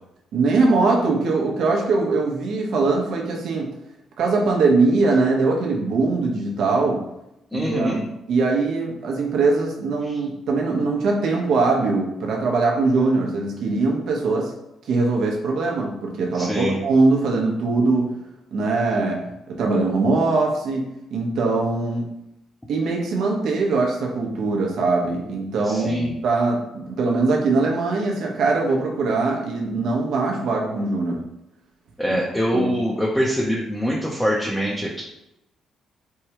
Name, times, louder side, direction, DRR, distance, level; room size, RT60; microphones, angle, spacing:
voice 1, 0.3-3.7 4.2-7.0 7.5-8.0 8.3-14.5 14.9-18.1 18.5-19.2 19.5-22.1 22.7-31.2 32.1-32.2 32.5-32.7, right 3 dB, 75° right, -1 dB, 0.9 m, -21 dB
voice 2, 7.5-8.0 10.0-10.2 16.3-16.8 25.6-26.1 32.0-35.0, equal, 10° left, -4 dB, 0.7 m, -24 dB
4.6 x 2.2 x 2.9 m, 0.86 s
cardioid pair, 90°, 0 cm